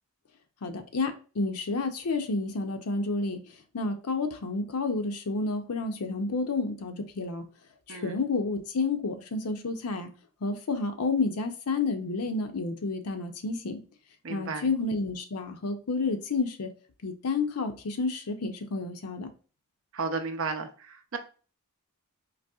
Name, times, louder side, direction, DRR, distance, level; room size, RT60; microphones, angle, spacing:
voice 1, 0.6-3.4 3.7-7.4 7.9-10.1 10.4-13.8 14.3-16.7 17.0-19.3, left 3 dB, 80° left, 0.6 m, -30 dB
voice 2, 14.2-14.7 19.9-21.2, right 4 dB, 60° right, 0.5 m, -33 dB
4.0 x 2.7 x 2.3 m
head